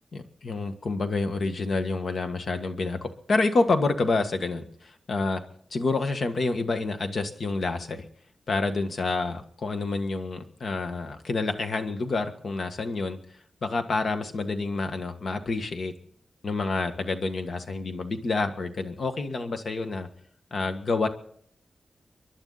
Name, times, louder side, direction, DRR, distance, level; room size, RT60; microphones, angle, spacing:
voice 1, 0.1-5.4 5.7-8.0 8.5-13.2 13.6-15.9 16.4-20.1 20.5-21.1, left 3 dB, 55° left, 7 dB, 1.6 m, -28 dB
29.5 x 11.5 x 4.1 m, 0.62 s
wide cardioid pair, 135°, 0 cm